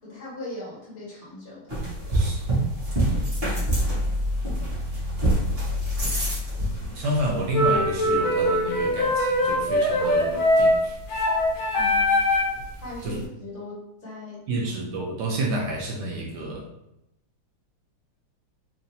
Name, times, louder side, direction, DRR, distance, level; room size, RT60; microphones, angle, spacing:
voice 1, 0.0-1.9 11.8-12.2 12.8-14.5, left 2 dB, 40° left, -8 dB, 1.8 m, -39 dB
sound 1, 1.7-13.2, equal, 35° right, 1.2 m, -28 dB
voice 2, 2.1-2.4 6.9-10.9 13.0-13.2 14.5-16.7, right 1 dB, 65° right, -2 dB, 1.2 m, -29 dB
sound 2, 7.5-12.6, left 1 dB, 75° left, 1.5 m, -22 dB
4.2 x 2.7 x 2.6 m, 0.87 s
omnidirectional pair, 2.2 m